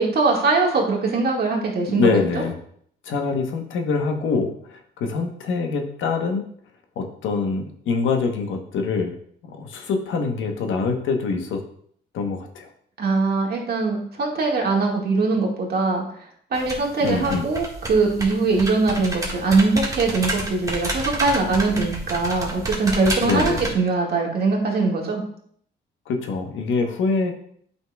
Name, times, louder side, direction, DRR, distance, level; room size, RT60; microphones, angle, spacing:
voice 1, 0.0-2.2 13.0-16.0 16.5-25.2, right 3 dB, 50° right, -1 dB, 1.8 m, -21 dB
voice 2, 1.9-2.5 3.0-6.4 7.0-9.1 9.4-11.6 12.1-12.7 17.0-17.5 23.2-23.6 26.1-27.3, left 4 dB, 80° left, 4 dB, 1.0 m, -24 dB
sound 1, 16.5-23.7, right 1 dB, 15° right, 1.5 m, -30 dB
7.9 x 5.6 x 2.3 m, 0.63 s
cardioid pair, 90°, 20 cm